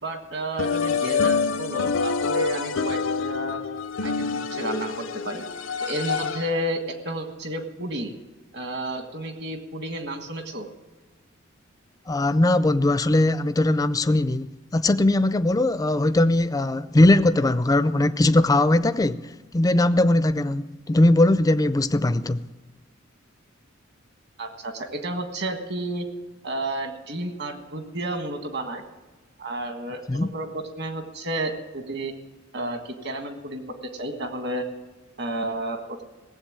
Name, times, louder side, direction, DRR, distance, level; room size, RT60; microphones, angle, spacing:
voice 1, 0.0-3.6 4.0-5.4 5.8-8.1 8.5-10.7 24.4-26.1 26.4-28.8 29.4-32.1 32.5-33.6 33.9-34.6 35.2-36.0, right 1 dB, 55° right, 1.6 m, -31 dB
sound 1, 0.6-6.7, left 5 dB, 70° left, 0.6 m, -26 dB
voice 2, 12.1-22.4 30.1-30.3, left 1 dB, 15° left, 0.4 m, -20 dB
17.5 x 7.7 x 8.8 m
head